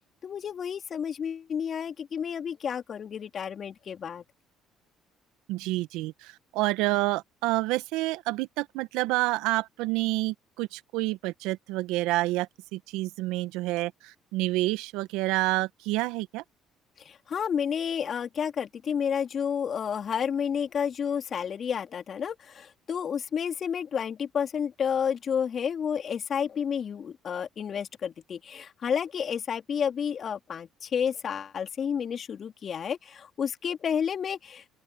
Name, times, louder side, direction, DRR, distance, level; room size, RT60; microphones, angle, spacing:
voice 1, 0.2-4.2 17.0-34.7, left 7 dB, 50° left, 3.3 m, -31 dB
voice 2, 5.5-16.4, right 19 dB, 75° right, 1.7 m, -28 dB
open air
hypercardioid pair, 60°, 0 cm